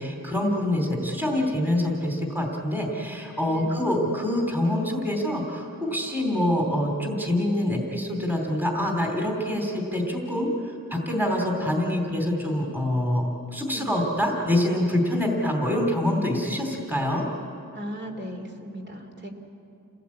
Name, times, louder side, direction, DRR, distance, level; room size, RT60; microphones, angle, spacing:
voice 1, 0.0-17.3, left 1 dB, 5° right, 0 dB, 3.0 m, -25 dB
voice 2, 3.5-3.8 13.6-14.0 17.7-19.3, equal, 30° right, 3 dB, 2.9 m, -37 dB
29.0 x 18.0 x 8.5 m, 2.8 s
wide cardioid pair, 150°, 36 cm